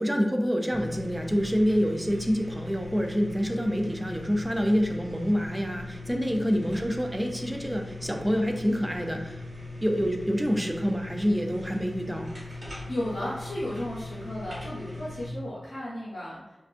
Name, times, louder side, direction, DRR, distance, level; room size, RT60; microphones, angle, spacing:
voice 1, 0.0-9.4 9.8-12.3, equal, 10° right, 3 dB, 0.3 m, -27 dB
sound 1, 0.7-15.3, left 2 dB, 50° right, 1.2 m, -40 dB
voice 2, 6.1-6.4 12.9-16.5, left 1 dB, 85° left, -10 dB, 0.7 m, -34 dB
2.4 x 2.3 x 2.4 m, 1.1 s
wide cardioid pair, 80°, 0 cm